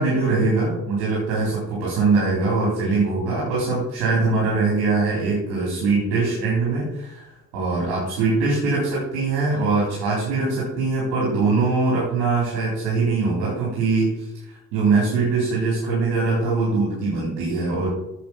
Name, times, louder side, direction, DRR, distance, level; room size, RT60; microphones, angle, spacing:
voice 1, 0.0-17.9, right 3 dB, 80° right, -5 dB, 4.0 m, -22 dB
8.6 x 8.2 x 5.8 m, 0.91 s
hypercardioid pair, 40°, 42 cm